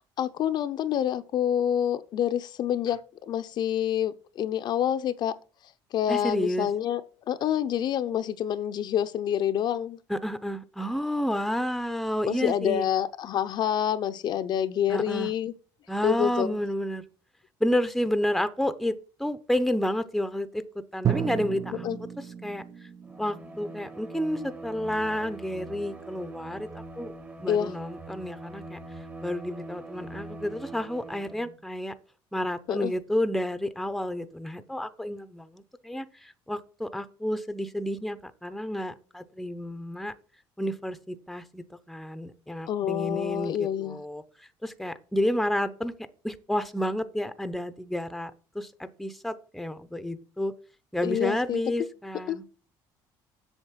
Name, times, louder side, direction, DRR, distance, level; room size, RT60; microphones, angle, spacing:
voice 1, 0.2-5.3 5.9-7.0 7.3-10.0 12.3-15.5 16.0-16.6 21.8-22.0 27.5-27.7 32.7-32.9 42.7-44.0 51.0-51.6 52.3-52.4, left 10 dB, 50° left, 0.7 m, -27 dB
voice 2, 6.1-6.7 10.1-12.9 14.9-15.3 15.9-17.0 17.6-21.9 22.4-22.6 23.2-27.1 27.4-28.8 29.2-31.9 32.3-40.1 40.6-44.2 44.6-45.9 46.2-50.5 50.9-52.4, equal, ahead, 0.8 m, -30 dB
Drum, 21.0-24.8, right 9 dB, 40° right, 0.6 m, -33 dB
Bowed string instrument, 23.0-31.6, right 2 dB, 15° right, 1.2 m, -43 dB
8.0 x 6.6 x 7.4 m
cardioid pair, 115°, 9 cm